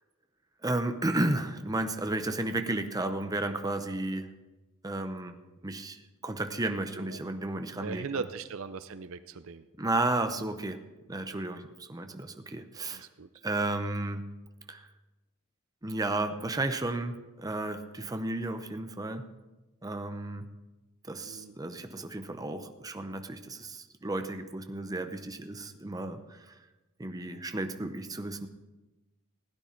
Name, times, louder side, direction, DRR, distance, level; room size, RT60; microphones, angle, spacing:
voice 1, 0.6-4.3 4.8-5.4 5.6-8.2 9.8-10.8 11.1-13.1 13.4-14.3 14.7-14.9 15.8-19.2 19.8-20.5 21.1-26.6 27.0-28.5, right 2 dB, 15° right, 7 dB, 0.7 m, -33 dB
voice 2, 7.8-9.7 12.8-13.3 21.3-21.6, right 5 dB, 65° right, 12 dB, 0.6 m, -39 dB
16.0 x 9.8 x 4.5 m, 1.1 s
head